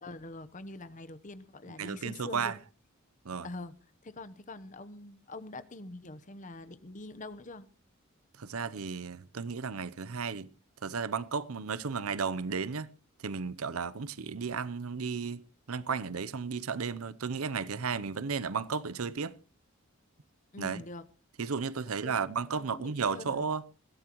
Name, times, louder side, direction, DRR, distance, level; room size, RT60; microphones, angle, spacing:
voice 1, 0.0-2.5 3.4-3.8 4.0-7.7 20.5-21.0 22.0-23.5, left 2 dB, 35° left, 0.9 m, -44 dB
voice 2, 1.8-2.6 3.2-3.5 8.4-10.5 10.8-12.9 13.2-15.4 15.7-19.3 20.6-20.8 21.4-23.6, right 5 dB, 90° right, 0.7 m, -34 dB
21.0 x 16.0 x 3.0 m
head